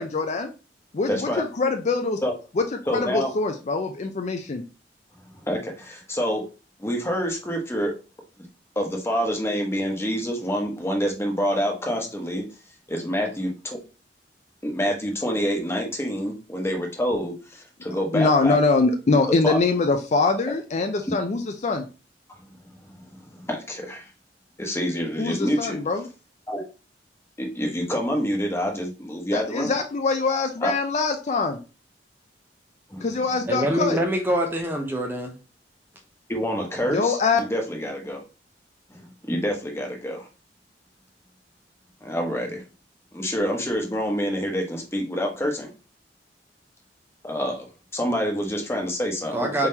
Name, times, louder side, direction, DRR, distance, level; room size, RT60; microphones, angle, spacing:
voice 1, 0.0-0.5 0.9-2.2 2.6-4.6 18.1-21.8 25.2-26.1 29.3-31.6 33.0-34.0 36.9-37.4, left 3 dB, 40° left, 5 dB, 0.5 m, -23 dB
voice 2, 1.1-1.4 2.2-2.3 2.9-3.3 5.3-6.4 6.8-7.9 8.8-12.5 12.9-13.8 14.6-18.6 19.4-19.6 22.4-22.5 23.1-24.1 24.6-25.8 26.5-26.6 27.4-29.7 30.6-30.7 32.9-33.1 33.4-33.6 36.3-38.2 38.9-40.3 42.0-42.6 43.1-45.7 47.2-47.7 47.9-49.7, equal, 15° left, 2 dB, 1.0 m, -27 dB
voice 3, 33.5-35.3 49.3-49.7, right 1 dB, 10° right, 3 dB, 0.5 m, -25 dB
4.4 x 3.7 x 2.8 m, 0.32 s
head